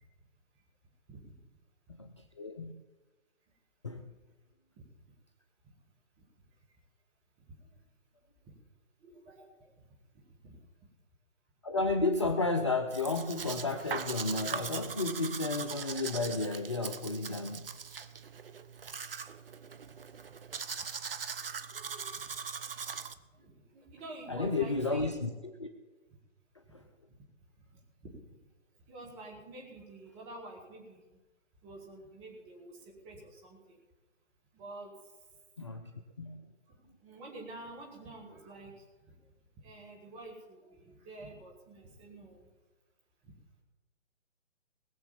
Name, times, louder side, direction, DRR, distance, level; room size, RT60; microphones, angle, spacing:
voice 1, 1.9-2.7 3.8-4.0 11.6-17.7 24.3-25.3 25.6-25.7 26.7-26.8 35.6-35.9 36.2-36.5, left 3 dB, 25° left, 7 dB, 0.5 m, -32 dB
voice 2, 7.4-7.7 8.5-8.6 9.0-9.7 10.1-10.9 21.7-22.2 23.2-25.2 26.6-26.8 27.1-27.2 27.6-28.2 28.9-31.2 31.6-33.8 34.5-34.9 36.7-39.2 39.6-42.5 43.2-43.3, right 2 dB, 15° right, -1 dB, 3.0 m, -49 dB
Domestic sounds home sounds, 12.9-23.1, right 6 dB, 45° right, 0.9 m, -40 dB
20.0 x 7.0 x 7.2 m, 1.2 s
figure-of-eight pair, 140°, 39 cm